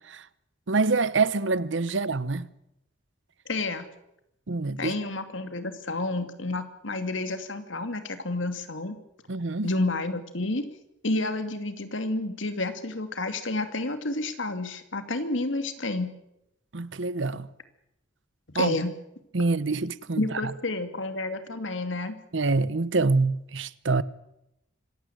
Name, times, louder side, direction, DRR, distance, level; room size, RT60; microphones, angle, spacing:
voice 1, 0.7-2.5 4.5-4.9 9.3-9.7 16.7-17.5 18.5-18.8 19.3-20.3 22.3-24.0, right 3 dB, 75° right, 0.9 m, -26 dB
voice 2, 3.5-3.9 4.8-9.0 9.6-10.6 11.0-16.1 18.5-18.9 20.2-22.2, left 2 dB, 85° left, 2.6 m, -30 dB
26.0 x 15.5 x 9.2 m
head